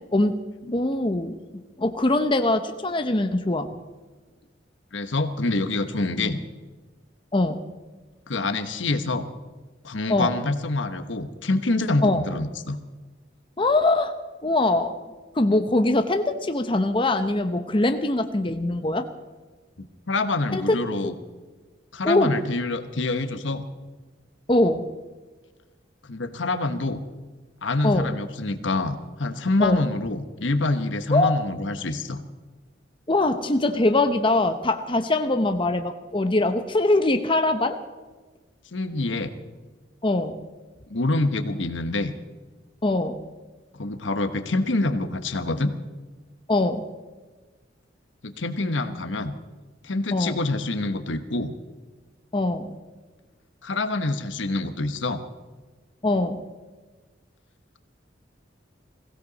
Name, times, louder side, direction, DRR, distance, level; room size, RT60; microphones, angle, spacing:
voice 1, 0.7-1.4 1.8-3.7 7.3-7.6 10.1-10.4 12.0-12.2 13.6-14.1 14.4-14.9 15.3-19.1 20.5-20.8 22.0-22.4 24.5-24.9 27.8-28.1 29.6-29.8 31.1-31.4 33.1-37.8 40.0-40.4 42.8-43.2 46.5-46.9 50.1-50.4 52.3-52.8 56.0-56.4, left 2 dB, 25° left, 7 dB, 0.8 m, -22 dB
voice 2, 4.9-6.4 8.3-9.3 9.8-12.8 19.8-21.1 21.9-23.7 26.0-27.0 27.6-32.2 38.7-39.3 40.9-42.1 43.7-45.7 48.2-49.4 49.8-51.5 53.6-55.2, left 2 dB, 85° left, 9 dB, 1.2 m, -26 dB
21.5 x 16.5 x 4.1 m, 1.3 s
head